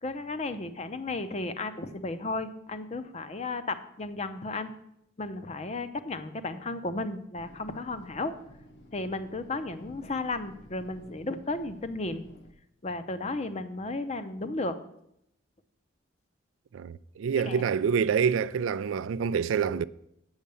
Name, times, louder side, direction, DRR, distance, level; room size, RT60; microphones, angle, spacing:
voice 1, 0.0-4.8 5.2-8.3 8.9-12.3 12.8-14.8 17.3-17.7, left 2 dB, 30° left, 0.6 m, -34 dB
sound 1, 7.3-12.5, equal, 55° left, 1.0 m, -53 dB
voice 2, 16.7-19.8, right 6 dB, 75° right, 0.3 m, -27 dB
8.0 x 7.4 x 6.9 m
head